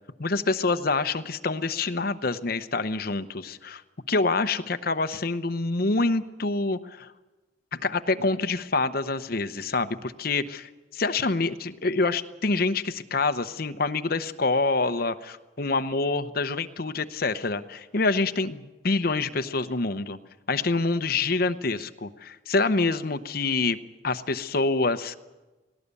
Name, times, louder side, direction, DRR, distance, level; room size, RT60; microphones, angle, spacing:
voice 1, 0.2-3.8 4.1-7.1 7.7-20.2 20.5-23.8 24.0-25.2, left 3 dB, 55° left, 10 dB, 0.9 m, -26 dB
18.5 x 17.5 x 8.3 m, 1.1 s
head